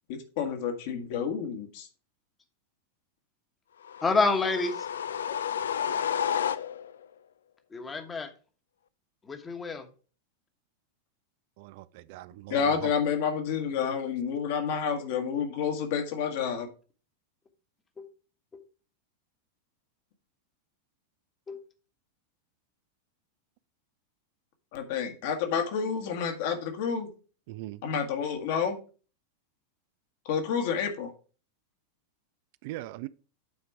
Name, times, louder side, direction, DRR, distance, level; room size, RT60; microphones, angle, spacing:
voice 1, 0.4-1.9 12.5-16.7 24.7-27.1 27.8-28.8 30.2-31.1, left 7 dB, 50° left, 1.5 m, -29 dB
sound 1, 3.8-7.0, left 8 dB, 65° left, 0.4 m, -31 dB
voice 2, 4.0-4.9 7.7-8.3 9.2-9.9 18.0-18.1 18.5-18.6 21.5-21.6, left 3 dB, 15° left, 1.2 m, -28 dB
voice 3, 11.6-12.9 27.5-27.8 32.6-33.1, right 17 dB, 50° right, 0.3 m, -40 dB
8.5 x 4.4 x 4.7 m
figure-of-eight pair, 90°, 0 cm